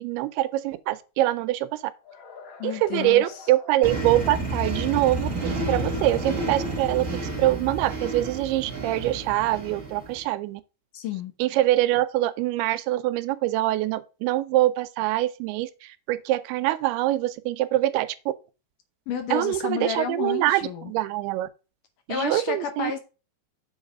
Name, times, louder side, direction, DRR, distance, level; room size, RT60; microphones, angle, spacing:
voice 1, 0.0-1.8 2.6-7.0 7.4-10.6 11.4-18.3 19.3-21.5 22.1-22.9, right 15 dB, 90° right, 2.6 m, -24 dB
sound 1, 2.0-4.5 5.0-7.5, left 4 dB, 50° left, 2.1 m, -47 dB
voice 2, 2.6-3.5 10.9-11.3 19.1-20.9 22.1-23.0, left 8 dB, 70° left, 2.1 m, -31 dB
sound 2, 3.8-10.2, right 2 dB, 40° right, 1.1 m, -30 dB
7.2 x 4.0 x 6.2 m
omnidirectional pair, 4.4 m